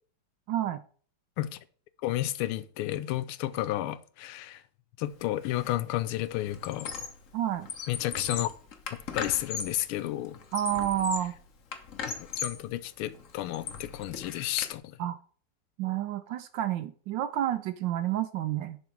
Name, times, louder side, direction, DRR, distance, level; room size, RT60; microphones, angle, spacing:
voice 1, 0.5-0.8 7.3-7.7 10.5-11.3 15.0-15.2 15.8-18.8, right 11 dB, 75° right, 1.1 m, -29 dB
voice 2, 2.0-4.6 5.0-6.9 7.9-8.5 9.1-10.4 12.3-15.0, left 14 dB, 90° left, 1.5 m, -32 dB
Squeak, 5.4-5.7 6.0-7.3 7.6-9.8 10.3-11.4 11.7-12.7 13.1-14.7, left 6 dB, 50° left, 0.9 m, -37 dB
10.5 x 4.1 x 4.4 m
omnidirectional pair, 2.4 m